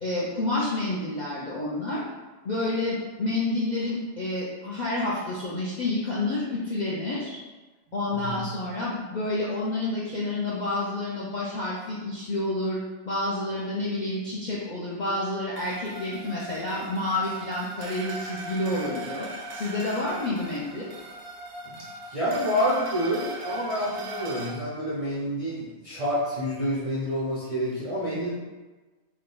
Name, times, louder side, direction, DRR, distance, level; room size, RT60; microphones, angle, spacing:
voice 1, 0.0-2.0 2.4-7.4 7.9-20.9, left 2 dB, 55° left, -7 dB, 0.5 m, -29 dB
sound 1, 15.6-24.5, right 1 dB, 65° right, 0.8 m, -39 dB
voice 2, 21.7-28.3, equal, 45° right, -8 dB, 0.4 m, -28 dB
3.6 x 2.2 x 3.8 m, 1.2 s
omnidirectional pair, 1.4 m